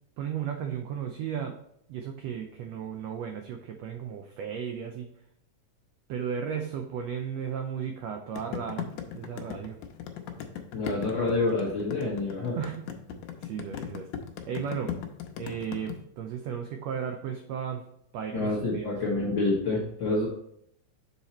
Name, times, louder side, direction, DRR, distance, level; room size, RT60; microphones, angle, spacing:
voice 1, 0.2-1.6 1.9-5.1 6.1-9.8 12.5-14.1 14.5-14.9 15.4-17.8 18.1-18.9, right 8 dB, 85° right, 4 dB, 1.4 m, -35 dB
sound 1, 8.4-15.9, left 9 dB, 80° left, 2.2 m, -37 dB
voice 2, 10.7-12.6 18.3-20.3, left 2 dB, 55° left, -4 dB, 1.4 m, -27 dB
7.0 x 4.1 x 4.2 m, 0.72 s
omnidirectional pair, 3.7 m